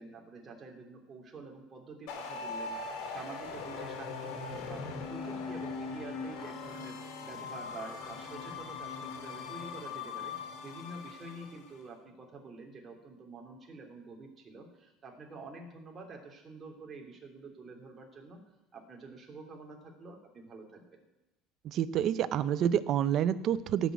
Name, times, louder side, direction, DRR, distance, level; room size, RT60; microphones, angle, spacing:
voice 1, 0.0-4.8 5.1-18.4 18.7-21.0, right 3 dB, 25° right, 0 dB, 2.9 m, -48 dB
sound 1, 2.1-11.7, left 4 dB, 70° left, 3.7 m, -40 dB
voice 2, 21.6-23.9, right 10 dB, 45° right, 14 dB, 0.7 m, -28 dB
16.5 x 6.3 x 8.1 m, 0.97 s
cardioid pair, 145°, 0 cm